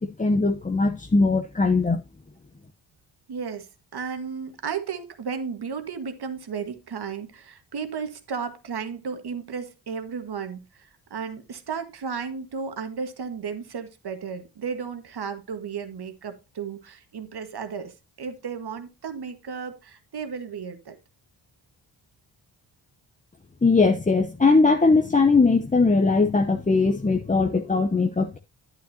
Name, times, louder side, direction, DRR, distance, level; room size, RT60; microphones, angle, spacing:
voice 1, 0.0-2.0 23.6-28.4, left 3 dB, 15° left, 0.8 m, -20 dB
voice 2, 3.3-21.0, right 6 dB, 55° right, 1.6 m, -34 dB
9.6 x 9.1 x 2.8 m
supercardioid pair, 45°, 47 cm